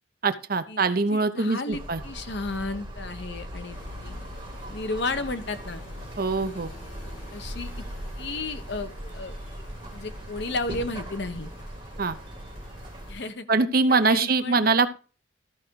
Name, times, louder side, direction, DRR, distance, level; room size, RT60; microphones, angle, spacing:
voice 1, 0.2-2.0 6.2-6.7 12.0-12.2 13.5-15.0, right 3 dB, 50° right, 10 dB, 0.7 m, -23 dB
voice 2, 1.1-4.1 4.7-5.8 7.3-7.7 8.2-9.4 9.9-11.5 13.1-13.5 13.9-14.6, left 3 dB, 60° left, 9 dB, 0.9 m, -33 dB
sound 1, 1.7-13.1, equal, 25° right, 2.6 m, -39 dB
sound 2, 3.7-13.3, left 2 dB, 85° left, 3.0 m, -50 dB
13.5 x 5.0 x 4.6 m, 0.34 s
head